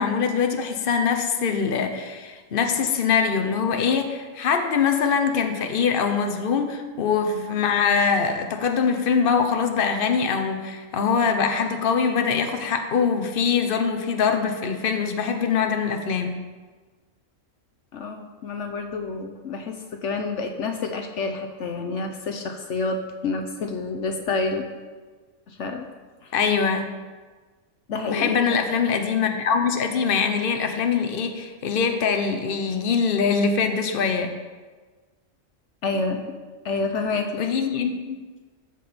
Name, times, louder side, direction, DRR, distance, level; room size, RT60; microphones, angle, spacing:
voice 1, 0.0-16.4 26.3-26.8 28.1-34.3 37.4-38.2, left 6 dB, 45° left, 6 dB, 1.1 m, -23 dB
voice 2, 17.9-24.6 25.5-25.9 26.2-26.3 27.9-28.6 35.8-36.2 36.6-37.4, left 3 dB, 70° left, 5 dB, 1.1 m, -28 dB
13.5 x 5.1 x 6.9 m, 1.4 s
omnidirectional pair, 1.3 m